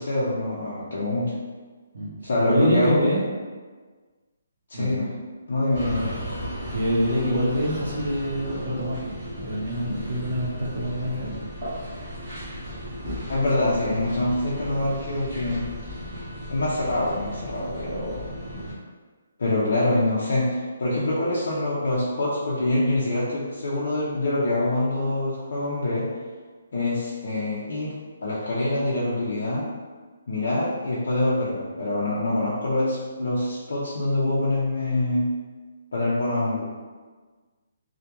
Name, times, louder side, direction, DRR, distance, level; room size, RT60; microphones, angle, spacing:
voice 1, 0.0-1.3 2.2-3.0 4.7-5.1 5.5-6.1 13.3-15.6 16.5-18.2 19.4-26.1 26.7-27.9 28.2-29.7 30.3-35.3 35.9-36.7, left 1 dB, 55° left, -7 dB, 0.5 m, -25 dB
voice 2, 2.4-3.2 4.7-5.0 6.7-9.0 9.3-11.4, equal, 60° right, -6 dB, 0.7 m, -25 dB
sound 1, 5.7-18.7, equal, 25° right, 0.9 m, -35 dB
2.3 x 2.1 x 2.9 m, 1.4 s
hypercardioid pair, 180°, 0 cm